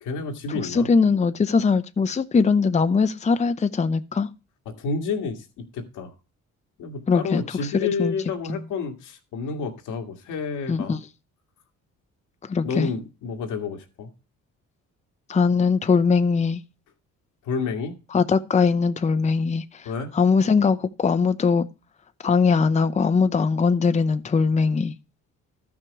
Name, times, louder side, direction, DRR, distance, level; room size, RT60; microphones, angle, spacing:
voice 1, 0.0-0.9 4.7-6.1 6.8-11.0 12.6-14.1 17.4-18.0 19.9-20.1, left 4 dB, 85° left, 1.8 m, -30 dB
voice 2, 0.6-4.3 7.1-7.4 7.7-8.1 8.5-8.6 10.7-11.0 12.5-12.9 15.3-16.6 18.1-19.9 20.1-21.7 22.2-24.9, left 5 dB, 25° left, 0.6 m, -21 dB
13.0 x 6.1 x 4.7 m
cardioid pair, 90°, 30 cm